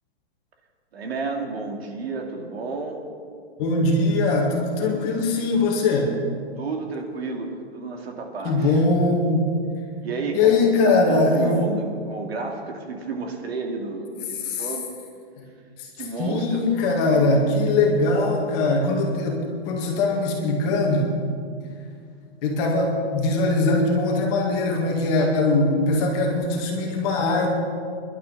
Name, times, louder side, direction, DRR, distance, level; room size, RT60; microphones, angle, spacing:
voice 1, 0.9-3.0 6.6-8.8 10.0-10.6 10.8-14.8 16.0-16.7, right 3 dB, 65° right, 2 dB, 2.7 m, -31 dB
voice 2, 3.6-6.1 8.4-9.5 10.3-11.6 14.4-14.7 15.4-15.5 15.8-15.9 16.2-21.1 22.4-27.5, left 2 dB, 25° left, 0 dB, 2.1 m, -21 dB
24.0 x 11.5 x 4.1 m, 2.2 s
hypercardioid pair, 165°, 33 cm